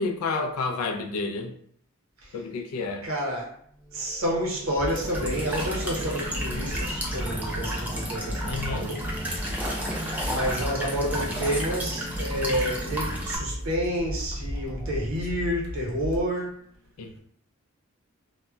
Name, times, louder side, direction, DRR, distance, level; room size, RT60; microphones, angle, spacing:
voice 1, 0.0-1.5 2.3-3.1 8.5-8.9 17.0-17.2, left 3 dB, 85° left, 7 dB, 0.3 m, -30 dB
voice 2, 3.0-3.5 3.9-9.0 10.2-16.6, equal, 70° right, -2 dB, 0.8 m, -29 dB
sound 1, 3.5-15.0, left 1 dB, 30° left, 1.0 m, -46 dB
sound 2, 4.8-16.2, equal, 60° left, 0.8 m, -35 dB
Walk footsteps / Chirp tweet / Stream, 4.9-13.4, equal, 5° right, 0.4 m, -33 dB
2.1 x 2.1 x 3.7 m, 0.66 s
head